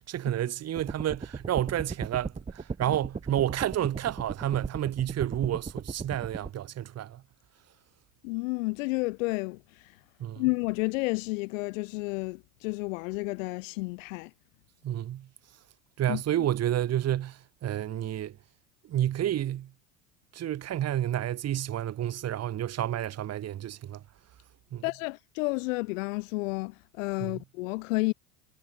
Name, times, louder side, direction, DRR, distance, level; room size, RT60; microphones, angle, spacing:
voice 1, 0.0-7.2 10.2-10.4 14.8-15.3 16.0-18.3 18.9-19.7 20.3-24.0 24.7-24.8 27.2-27.4, right 12 dB, 40° right, 2.2 m, -30 dB
sound 1, 0.8-6.5, right 5 dB, 20° right, 2.6 m, -37 dB
voice 2, 8.2-10.0 10.4-14.3 16.1-16.2 24.8-28.1, left 25 dB, 70° left, 2.1 m, -31 dB
hypercardioid pair, 90°, 40 cm